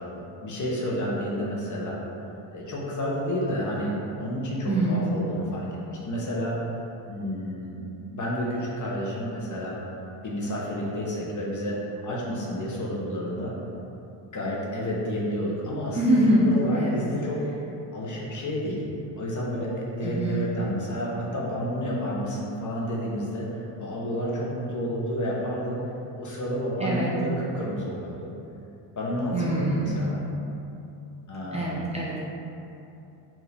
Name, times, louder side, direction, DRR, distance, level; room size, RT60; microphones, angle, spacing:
voice 1, 0.0-2.0 2.5-6.8 7.1-9.8 10.2-13.5 14.3-17.4 17.9-18.8 19.2-25.8 26.2-28.2 29.0-30.2 31.3-32.0, equal, 40° left, -4 dB, 1.1 m, -30 dB
voice 2, 4.7-5.1 15.9-17.1 20.0-20.5 26.8-27.1 29.3-30.2 31.5-32.2, right 1 dB, 15° right, -7 dB, 0.5 m, -24 dB
4.8 x 2.9 x 3.4 m, 2.8 s
supercardioid pair, 85°, 48 cm